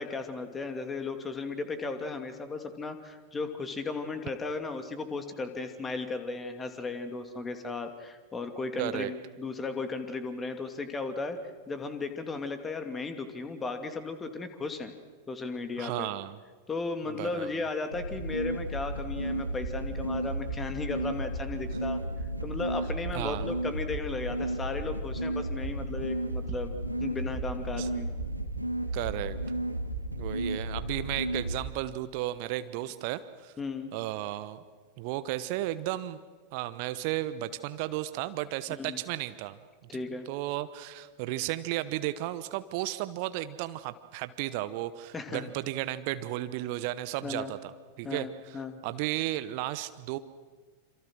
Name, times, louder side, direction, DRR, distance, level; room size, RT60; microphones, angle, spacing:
voice 1, 0.0-11.4 11.7-14.9 15.3-16.1 16.7-22.0 22.4-26.7 27.0-28.1 33.6-33.9 38.7-39.0 39.9-40.3 45.1-45.5 47.2-47.5 48.0-48.8, left 3 dB, 15° left, 7 dB, 2.6 m, -35 dB
voice 2, 8.8-9.1 15.8-16.4 17.2-17.6 23.1-23.5 27.8-27.9 28.9-29.4 30.1-33.5 33.9-34.6 35.0-36.2 36.5-39.6 40.3-47.7 48.0-50.2, right 15 dB, 45° right, 13 dB, 1.0 m, -34 dB
sound 1, 17.9-31.6, right 1 dB, 90° right, 2.0 m, -33 dB
28.0 x 26.5 x 6.4 m, 1.5 s
figure-of-eight pair, 90°, 0 cm